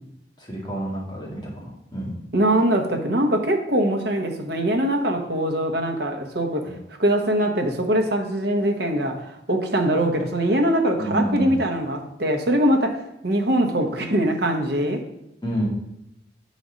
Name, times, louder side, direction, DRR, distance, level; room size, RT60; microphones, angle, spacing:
voice 1, 0.4-2.2 6.6-6.7 11.0-11.6 15.4-15.7, right 1 dB, 25° left, -3 dB, 1.9 m, -28 dB
voice 2, 2.3-6.7 7.0-15.0, right 1 dB, 60° right, 3 dB, 1.1 m, -22 dB
7.8 x 4.2 x 5.1 m, 0.83 s
head